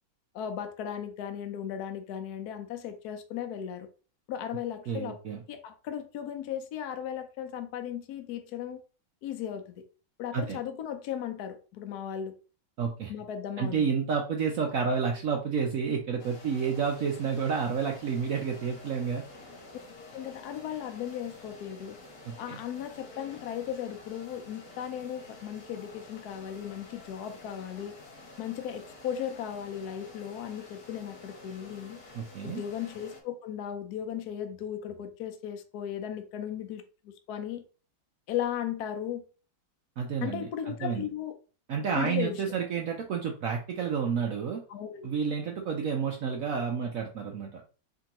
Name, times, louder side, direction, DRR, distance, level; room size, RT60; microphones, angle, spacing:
voice 1, 0.3-3.9 4.3-5.2 5.5-8.8 9.2-9.8 10.2-12.3 13.1-13.9 20.1-22.0 22.4-28.0 28.4-32.0 32.4-36.8 37.3-37.6 38.3-39.2 40.2-41.3 41.9-42.4 44.7-45.1, left 9 dB, 70° left, 1.0 m, -36 dB
voice 2, 4.9-5.4 10.3-10.6 12.8-13.1 13.6-19.2 22.3-22.6 32.1-32.6 40.0-41.1 41.7-44.6 45.0-47.6, right 6 dB, 75° right, 0.7 m, -30 dB
sound 1, 16.2-33.2, left 2 dB, 50° left, 1.5 m, -50 dB
4.4 x 3.7 x 2.9 m
omnidirectional pair, 2.2 m